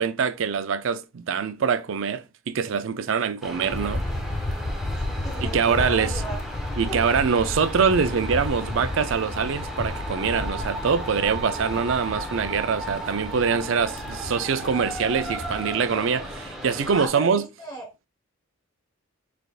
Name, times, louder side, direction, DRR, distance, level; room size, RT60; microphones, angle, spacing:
voice 1, 0.0-4.0 5.4-6.2 6.8-17.4, right 6 dB, 65° right, 0.5 m, -24 dB
sound 1, 3.4-17.1, right 1 dB, ahead, 1.0 m, -35 dB
sound 2, 3.7-15.7, left 1 dB, 35° left, 0.7 m, -33 dB
voice 2, 5.1-6.4 6.9-7.0 16.9-18.1, right 1 dB, 20° left, 1.3 m, -36 dB
6.3 x 3.4 x 2.4 m
head